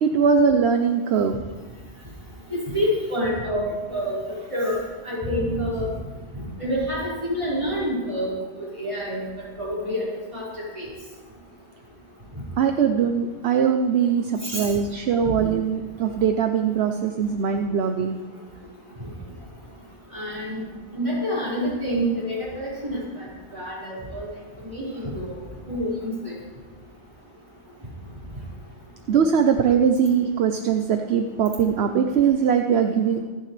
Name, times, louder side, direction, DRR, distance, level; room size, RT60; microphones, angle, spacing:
voice 1, 0.0-1.4 12.6-18.2 29.1-33.2, right 7 dB, 70° right, 6 dB, 1.0 m, -21 dB
voice 2, 2.5-4.2 4.5-4.8 5.0-5.9 6.3-8.3 8.6-9.2 9.6-10.4 10.7-10.9 14.4-14.7 20.1-20.6 20.9-23.3 23.5-24.3 24.6-25.4 25.7-26.3, equal, 30° right, -8 dB, 5.4 m, -27 dB
26.0 x 9.3 x 3.3 m, 1.3 s
omnidirectional pair, 1.1 m